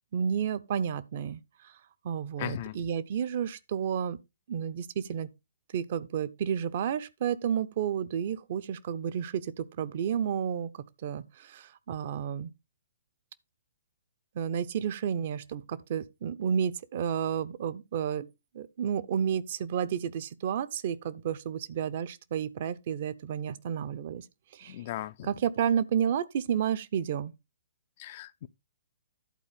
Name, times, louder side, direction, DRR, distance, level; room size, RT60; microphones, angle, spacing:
voice 1, 0.1-1.4 2.0-4.2 4.5-5.3 5.7-12.5 14.4-18.3 18.5-24.2 24.5-24.8 25.2-27.3, right 8 dB, 45° right, 0.7 m, -31 dB
voice 2, 2.4-2.8 24.7-25.3 28.0-28.5, left 13 dB, 40° left, 0.5 m, -37 dB
11.5 x 4.3 x 5.0 m
figure-of-eight pair, 125°, 0 cm